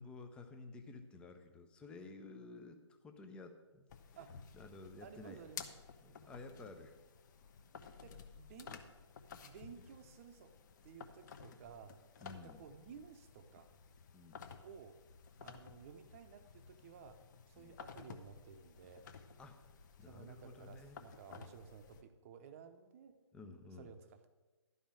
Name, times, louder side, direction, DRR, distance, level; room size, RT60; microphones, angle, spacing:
voice 1, 0.0-2.8 3.0-4.2 4.5-5.4 6.0-7.0 12.2-12.6 14.1-14.4 17.5-17.7 19.4-19.7 20.0-21.0 23.3-23.9, left 3 dB, 5° left, 6 dB, 0.5 m, -53 dB
sound 1, 3.9-22.0, left 6 dB, 40° left, 0.8 m, -55 dB
voice 2, 5.0-5.6 8.0-8.8 9.4-10.5 10.8-12.0 12.3-13.7 14.6-15.0 15.4-17.2 17.5-19.1 20.1-23.2 23.8-24.3, right 7 dB, 30° right, 8 dB, 0.8 m, -55 dB
11.5 x 5.4 x 7.5 m, 1.2 s
hypercardioid pair, 150°, 15 cm